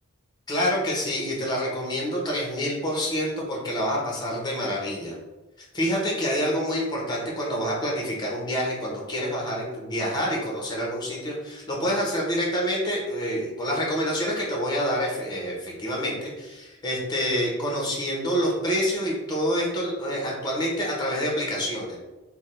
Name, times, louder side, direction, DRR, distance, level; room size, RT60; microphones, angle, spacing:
voice 1, 0.5-5.2 5.7-22.0, equal, 20° left, -3 dB, 0.9 m, -27 dB
3.5 x 2.2 x 4.2 m, 1.1 s
head